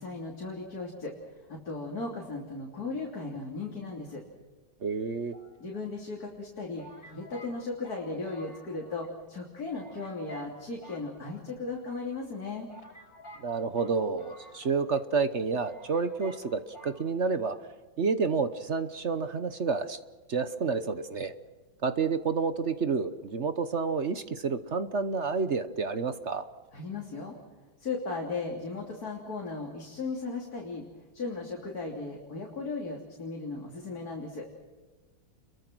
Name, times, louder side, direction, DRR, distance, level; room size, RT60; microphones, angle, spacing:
voice 1, 0.0-4.2 5.6-12.7 26.7-27.4 27.8-30.8 31.1-34.5, left 3 dB, 50° left, -1 dB, 3.7 m, -36 dB
voice 2, 4.8-5.3 13.4-17.6 18.0-20.0 20.3-21.3 21.8-26.4, right 4 dB, 45° right, 11 dB, 1.0 m, -29 dB
sound 1, 5.3-6.1 6.8-9.1 9.3-9.4 9.7-10.5 10.8-11.8 12.3-12.4 12.7-15.0 15.3-15.4 15.6-16.5 16.7-17.0, left 1 dB, 75° left, 4.9 m, -51 dB
29.0 x 23.0 x 6.2 m, 1.3 s
omnidirectional pair, 2.1 m